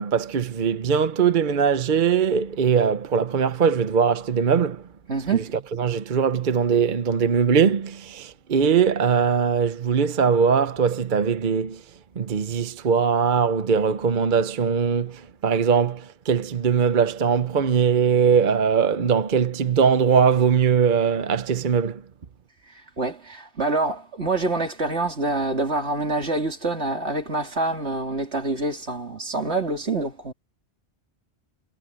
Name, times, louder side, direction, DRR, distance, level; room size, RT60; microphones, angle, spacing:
voice 1, 0.0-4.8 5.3-5.4 5.8-11.8 12.2-22.0, right 6 dB, 50° right, 0.9 m, -21 dB
voice 2, 5.1-5.5 23.0-30.3, right 3 dB, 80° right, 3.2 m, -26 dB
omnidirectional pair, 1.1 m